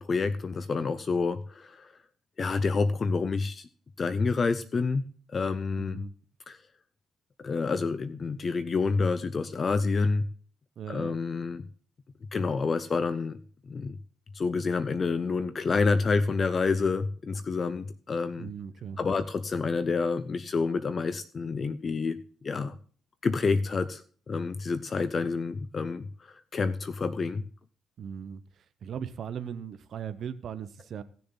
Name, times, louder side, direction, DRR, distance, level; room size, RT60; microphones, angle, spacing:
voice 1, 0.0-1.9 2.4-3.7 4.0-5.0 5.3-6.0 6.5-6.6 7.4-10.2 10.9-11.6 12.3-13.4 13.7-14.0 14.3-18.5 19.0-22.2 22.4-22.7 23.2-27.5, left 4 dB, 40° left, 14 dB, 0.7 m, -28 dB
voice 2, 5.8-6.1 10.8-11.2 18.4-19.3 28.0-31.0, right 8 dB, 60° right, 12 dB, 0.9 m, -39 dB
17.5 x 6.8 x 3.9 m, 0.43 s
cardioid pair, 90°, 0 cm